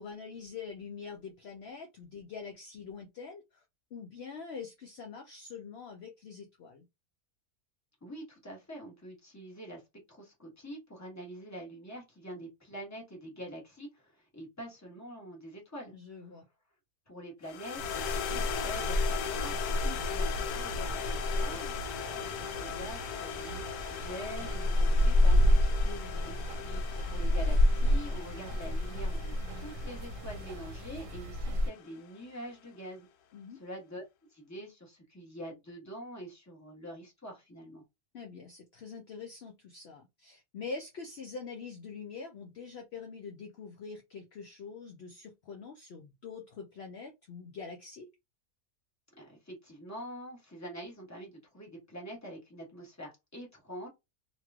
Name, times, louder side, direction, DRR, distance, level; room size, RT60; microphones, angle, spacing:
voice 1, 0.0-3.6 3.9-6.9 15.9-16.5 19.8-20.1 25.7-26.3 33.3-33.6 38.1-48.1, left 5 dB, 60° left, 0.7 m, -44 dB
voice 2, 8.0-9.8 10.1-16.3 17.1-25.5 26.2-26.8 27.1-33.1 33.5-34.0 34.3-37.8 49.2-53.9, equal, 10° left, 1.1 m, -45 dB
sound 1, 17.5-31.9, left 8 dB, 80° left, 1.1 m, -39 dB
sound 2, 17.8-31.7, left 1 dB, 65° right, 1.0 m, -30 dB
3.0 x 2.9 x 2.3 m
omnidirectional pair, 1.6 m